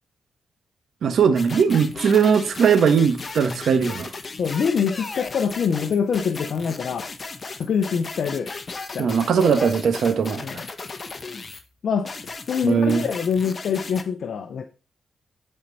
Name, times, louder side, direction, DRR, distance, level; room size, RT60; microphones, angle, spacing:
voice 1, 1.0-4.1 9.0-10.4 12.6-13.0, right 6 dB, 75° right, 1.3 m, -19 dB
sound 1, 1.4-11.6 12.1-14.0, left 4 dB, 45° left, 1.1 m, -36 dB
voice 2, 4.4-7.1 7.6-8.5 8.9-9.1 10.4-10.6 11.8-12.1 12.5-14.6, left 6 dB, 70° left, 0.7 m, -24 dB
11.0 x 4.5 x 4.1 m
cardioid pair, 65°, 0 cm